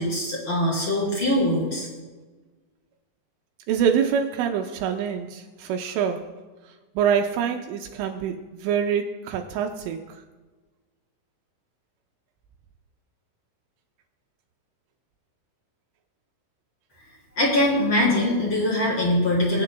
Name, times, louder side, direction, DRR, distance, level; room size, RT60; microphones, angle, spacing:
voice 1, 0.0-1.9 17.4-19.6, left 1 dB, 25° left, -5 dB, 3.8 m, -22 dB
voice 2, 3.7-6.3 7.0-10.0, right 7 dB, 80° right, 4 dB, 3.0 m, -25 dB
22.5 x 9.7 x 2.2 m, 1.3 s
omnidirectional pair, 5.8 m